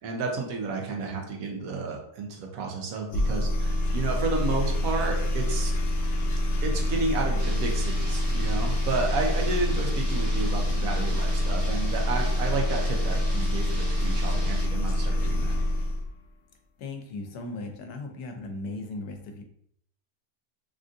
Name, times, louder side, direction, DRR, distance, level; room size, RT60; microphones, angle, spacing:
voice 1, 0.0-5.7 6.6-15.6, right 3 dB, 70° right, 1 dB, 1.0 m, -31 dB
sound 1, 3.1-16.1, left 1 dB, 70° left, 0.5 m, -26 dB
sound 2, 7.4-14.7, right 1 dB, 35° right, 0.5 m, -43 dB
voice 2, 16.8-19.4, left 2 dB, 90° left, 4 dB, 1.1 m, -37 dB
3.6 x 2.6 x 2.4 m, 0.69 s
omnidirectional pair, 1.6 m